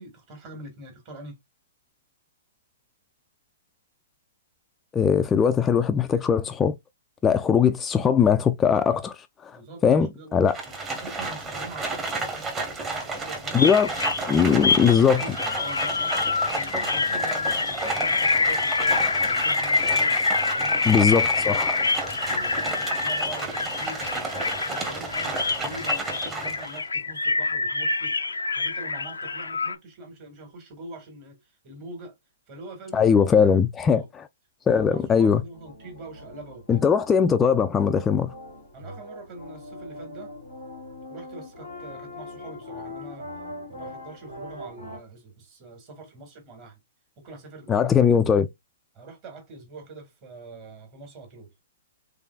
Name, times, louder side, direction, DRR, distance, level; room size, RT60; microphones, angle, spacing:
voice 1, 0.0-1.4 9.5-13.8 14.3-20.2 20.5-20.8 21.4-28.1 28.5-32.2 32.5-34.1 34.7-36.8 38.7-40.3 41.1-43.3 43.7-46.8 47.2-48.0 48.9-51.5, right 2 dB, 40° right, 2.0 m, -43 dB
voice 2, 4.9-6.7 7.2-10.6 13.5-13.9 14.3-15.2 20.8-21.8 32.9-34.0 34.7-35.4 36.7-38.3 47.7-48.5, left 7 dB, 15° left, 0.3 m, -20 dB
Livestock farm animals working animals, 10.5-26.8, right 3 dB, 20° right, 1.1 m, -32 dB
sound 1, 13.6-29.7, left 4 dB, 85° left, 0.4 m, -26 dB
sound 2, 35.5-45.0, left 1 dB, 90° right, 2.7 m, -41 dB
3.6 x 3.3 x 2.3 m
hypercardioid pair, 125°, 0 cm